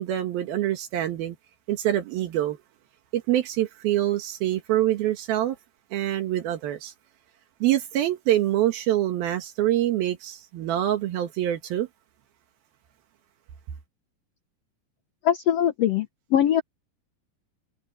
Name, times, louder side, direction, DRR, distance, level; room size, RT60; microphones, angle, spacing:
voice 1, 0.0-1.4 1.7-2.6 3.1-5.6 5.9-6.9 7.6-11.9, right 13 dB, 80° right, 3.3 m, -25 dB
voice 2, 15.2-16.6, left 10 dB, 90° left, 1.4 m, -22 dB
omnidirectional pair, 4.2 m